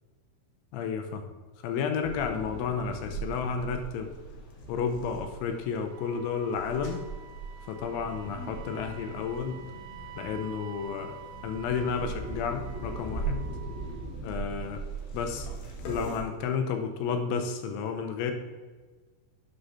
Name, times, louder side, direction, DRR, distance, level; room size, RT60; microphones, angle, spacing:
voice 1, 0.7-1.2 1.6-4.1 4.7-7.1 7.7-9.6 10.2-11.2 11.4-13.4 14.2-14.8 15.1-15.5 15.9-18.3, left 6 dB, 85° left, 5 dB, 3.0 m, -31 dB
sound 1, 2.0-16.2, right 3 dB, 70° left, 2.4 m, -39 dB
Wind instrument woodwind instrument, 5.9-14.1, right 10 dB, 80° right, 2.6 m, -48 dB
8.5 x 5.1 x 5.6 m, 1.4 s
omnidirectional pair, 5.5 m